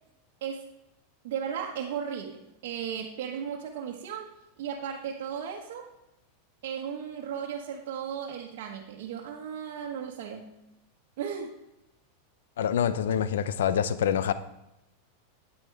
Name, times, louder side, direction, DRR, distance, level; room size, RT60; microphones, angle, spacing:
voice 1, 1.2-4.3 4.6-5.9 6.6-10.5 11.2-11.5, right 8 dB, 65° right, -2 dB, 1.2 m, -35 dB
voice 2, 12.6-14.3, left 9 dB, 80° left, 14 dB, 0.6 m, -26 dB
9.1 x 9.1 x 3.4 m, 0.89 s
hypercardioid pair, 120°, 0 cm